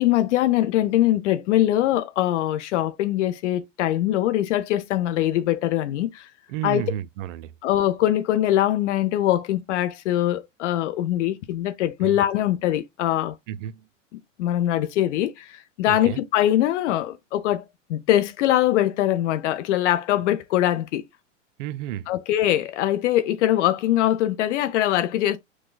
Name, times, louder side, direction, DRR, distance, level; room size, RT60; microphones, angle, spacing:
voice 1, 0.0-6.3 6.6-6.8 7.6-13.4 14.1-21.0 22.1-25.4, left 13 dB, 70° left, 0.5 m, -22 dB
voice 2, 6.5-7.5 12.0-12.2 13.5-13.9 15.9-16.2 21.6-22.1, right 12 dB, 75° right, 0.5 m, -32 dB
6.1 x 2.1 x 2.3 m
hypercardioid pair, 115°, 38 cm